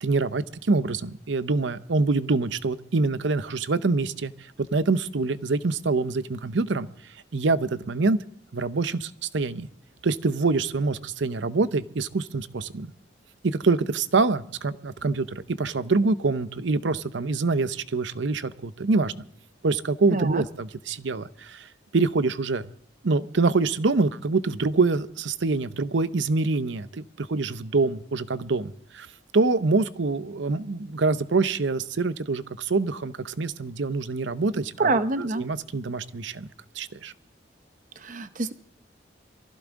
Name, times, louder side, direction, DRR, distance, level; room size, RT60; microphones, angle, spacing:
voice 1, 0.0-4.3 4.6-6.9 7.3-8.2 8.5-9.7 10.0-12.9 13.4-19.1 19.6-22.7 23.0-29.1 29.3-36.5 36.7-37.1, right 3 dB, 75° right, 14 dB, 0.7 m, -25 dB
voice 2, 20.1-20.4 34.8-35.5 38.0-38.5, right 3 dB, 40° right, 11 dB, 0.7 m, -26 dB
22.5 x 15.5 x 3.7 m, 0.66 s
head